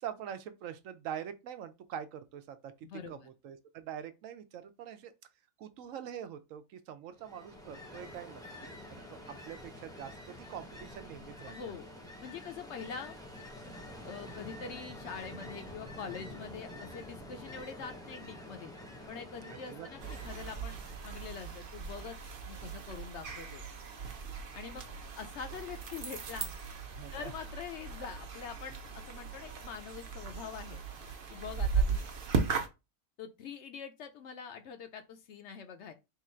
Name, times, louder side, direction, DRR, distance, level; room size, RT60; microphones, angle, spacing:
voice 1, 0.0-2.7 3.1-5.1 5.6-9.0 9.4-11.5 19.5-20.1 27.0-27.3, right 9 dB, 75° right, 0.9 m, -44 dB
voice 2, 2.8-3.3 11.5-11.9 12.2-13.2 14.0-18.7 19.1-20.8 21.0-22.2 22.5-23.6 24.5-24.8 25.2-26.5 27.1-30.8 31.3-32.0 33.2-35.9, left 6 dB, 65° left, 0.8 m, -44 dB
Ocean, 7.2-21.2, left 1 dB, 5° left, 0.6 m, -48 dB
sound 1, 20.0-32.7, right 5 dB, 50° right, 0.8 m, -37 dB
3.7 x 2.4 x 4.3 m
omnidirectional pair, 1.4 m